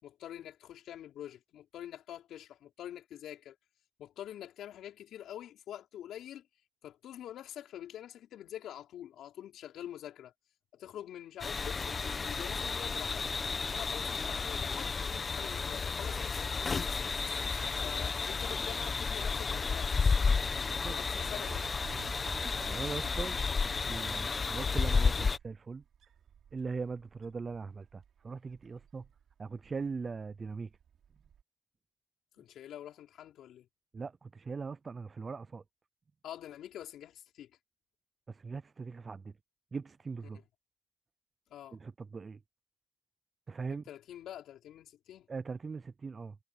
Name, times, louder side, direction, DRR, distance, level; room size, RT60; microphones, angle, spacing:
voice 1, 0.0-3.6 4.0-6.5 6.8-10.3 10.7-13.4 13.7-17.4 17.8-20.1 20.9-21.6 32.4-33.7 36.2-37.5 41.5-41.8 43.7-45.3, left 11 dB, 75° left, 5.2 m, -46 dB
sound 1, 11.4-25.4, left 5 dB, 35° left, 1.4 m, -32 dB
Wind, 20.7-31.4, right 8 dB, 60° right, 5.5 m, -55 dB
voice 2, 22.6-23.4 23.9-25.8 26.5-29.0 29.4-30.7 33.9-35.6 38.3-39.3 39.7-40.4 41.7-42.4 43.5-43.8 45.3-46.4, right 4 dB, 35° right, 0.6 m, -40 dB
cardioid pair, 90°, 0 cm